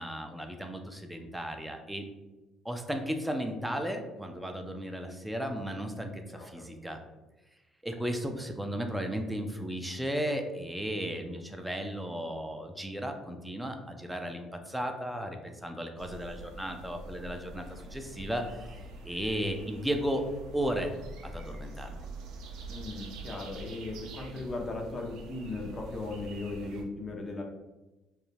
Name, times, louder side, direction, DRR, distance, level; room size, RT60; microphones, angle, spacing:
voice 1, 0.0-2.1 2.6-7.0 7.8-18.5 19.1-20.2 20.5-20.9 21.2-22.0, equal, 5° right, 4 dB, 0.4 m, -35 dB
voice 2, 6.3-6.7 22.7-27.4, left 2 dB, 35° left, 1 dB, 0.6 m, -37 dB
sound 1, 16.0-26.8, right 2 dB, 75° right, 0.4 m, -45 dB
2.3 x 2.0 x 3.2 m, 1.1 s
hypercardioid pair, 60°, 0 cm